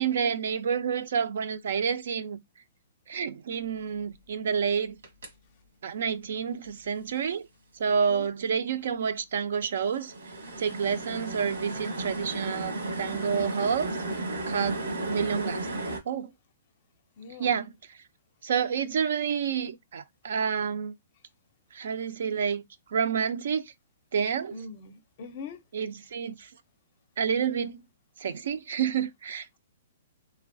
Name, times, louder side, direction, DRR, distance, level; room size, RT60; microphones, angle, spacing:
voice 1, 0.0-2.4 3.1-5.0 5.8-7.5 7.8-10.1 10.6-14.0 14.5-14.8 15.1-15.7 16.1-16.3 17.4-17.7 18.4-20.9 21.7-22.6 22.9-23.7 24.1-24.6 25.7-26.5 27.2-27.9 28.2-29.6, right 7 dB, 60° right, 0.4 m, -29 dB
sound 1, 5.0-5.3 9.8-16.0, right 2 dB, 85° right, 1.3 m, -34 dB
voice 2, 17.2-17.6 24.5-25.6, left 4 dB, 35° left, 0.5 m, -42 dB
3.1 x 2.7 x 2.6 m
hypercardioid pair, 175°, 0 cm